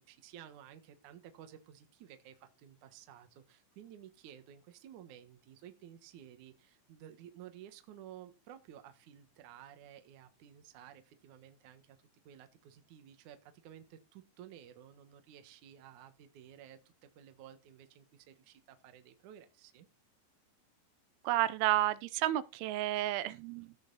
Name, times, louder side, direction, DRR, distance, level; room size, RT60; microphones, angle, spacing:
voice 1, 0.1-12.0 12.3-19.9, right 10 dB, 65° right, 2.0 m, -54 dB
voice 2, 21.2-23.8, right 14 dB, 85° right, 3.0 m, -31 dB
16.5 x 5.5 x 4.1 m
omnidirectional pair, 5.5 m